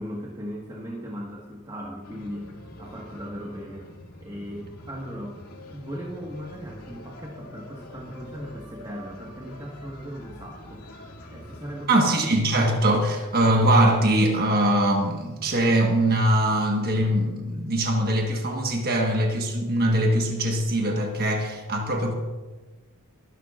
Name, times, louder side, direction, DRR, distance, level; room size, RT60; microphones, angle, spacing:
voice 1, 0.0-3.9 4.2-5.4 5.7-11.0 11.3-12.0, equal, 20° right, -2 dB, 1.5 m, -38 dB
sound 1, 2.0-11.9, left 1 dB, 90° left, 2.4 m, -45 dB
voice 2, 11.9-22.1, right 1 dB, 45° right, 2 dB, 1.4 m, -22 dB
23.0 x 11.0 x 2.5 m, 1.2 s
head